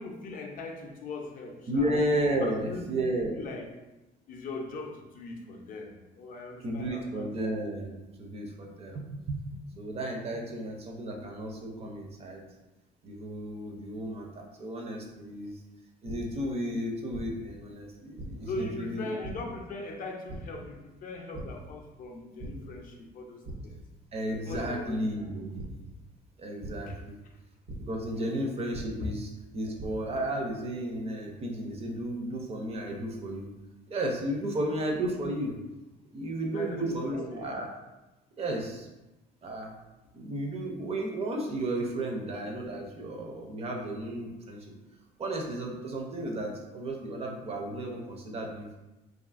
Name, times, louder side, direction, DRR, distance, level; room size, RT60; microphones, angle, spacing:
voice 1, 0.0-1.9 2.4-3.0 3.3-3.7 4.3-7.2 18.5-23.8 24.4-25.0 25.4-25.5 26.9-27.0 28.1-28.2 34.5-34.6 36.5-37.5, left 2 dB, 55° left, 1 dB, 0.5 m, -40 dB
voice 2, 1.7-3.4 6.6-12.4 13.0-15.6 16.0-19.3 24.1-25.6 26.4-27.2 27.9-33.5 33.9-35.6 36.1-37.7 38.4-38.9 39.4-39.7 40.1-44.7 45.2-48.8, right 1 dB, 35° right, 1 dB, 0.5 m, -33 dB
sound 1, 16.0-16.1 17.1-17.2 18.2-18.3 19.2-19.3 20.3-20.4 21.3-21.4 21.9-22.1 22.4-22.5 23.4-23.5 24.5-24.6 25.6-25.7 26.6-26.7 27.7-27.8 28.7-28.8 29.5-29.9, right 1 dB, 90° right, 0.8 m, -39 dB
2.6 x 2.4 x 2.4 m, 1.0 s
cardioid pair, 110°, 17 cm